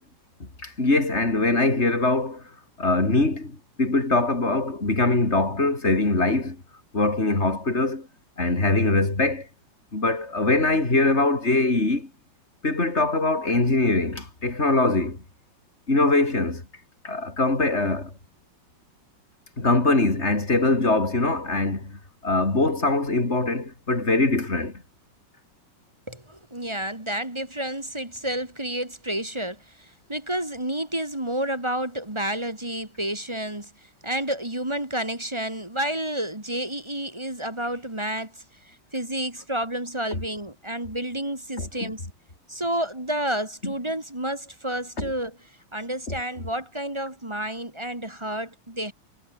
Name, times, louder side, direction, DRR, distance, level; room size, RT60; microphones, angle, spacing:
voice 1, 0.4-2.4 2.8-6.6 6.9-8.1 8.4-9.5 9.9-12.1 12.6-15.2 15.9-16.6 17.0-18.1 19.6-24.8 41.6-41.9 43.6-43.7 45.0-45.1, left 2 dB, 30° left, 4.5 m, -22 dB
voice 2, 26.1-33.7 34.0-42.0 42.5-45.4 45.7-48.9, right 1 dB, 15° right, 2.3 m, -30 dB
omnidirectional pair, 2.4 m